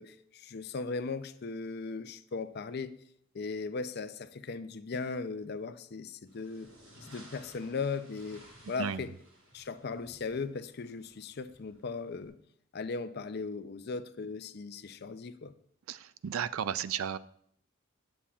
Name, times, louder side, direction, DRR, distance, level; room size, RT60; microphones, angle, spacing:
voice 1, 0.0-2.9 3.3-6.7 7.1-9.1 9.5-12.3 12.7-15.5, left 4 dB, 50° left, 0.5 m, -38 dB
sound 1, 6.3-12.3, equal, 65° right, 4.7 m, -57 dB
voice 2, 15.9-17.2, right 8 dB, 85° right, 0.4 m, -34 dB
19.5 x 7.2 x 2.4 m
head